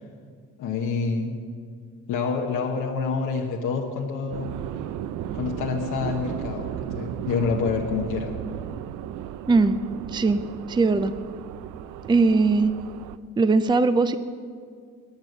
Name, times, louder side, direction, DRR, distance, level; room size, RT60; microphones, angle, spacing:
voice 1, 0.6-1.4 2.1-4.5 5.3-6.7 6.9-8.4, left 5 dB, 90° left, 0 dB, 1.2 m, -27 dB
sound 1, 4.3-13.2, right 11 dB, 85° right, 0.5 m, -35 dB
voice 2, 10.1-10.4 10.7-11.1 12.1-12.7 13.4-14.2, right 3 dB, 15° right, 12 dB, 0.5 m, -19 dB
14.5 x 9.2 x 6.6 m, 2.1 s
cardioid pair, 90°, 30 cm